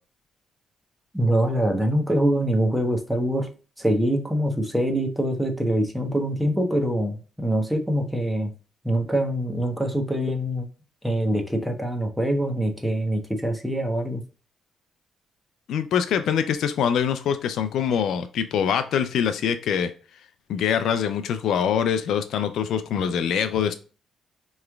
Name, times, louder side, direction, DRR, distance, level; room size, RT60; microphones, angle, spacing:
voice 1, 1.1-3.5 3.8-8.5 8.8-10.7 11.0-14.2, right 1 dB, 5° right, 3 dB, 0.9 m, -24 dB
voice 2, 15.7-19.9 20.5-23.8, left 8 dB, 75° left, 10 dB, 0.4 m, -24 dB
4.7 x 3.1 x 2.2 m, 0.36 s
cardioid pair, 90°, 0 cm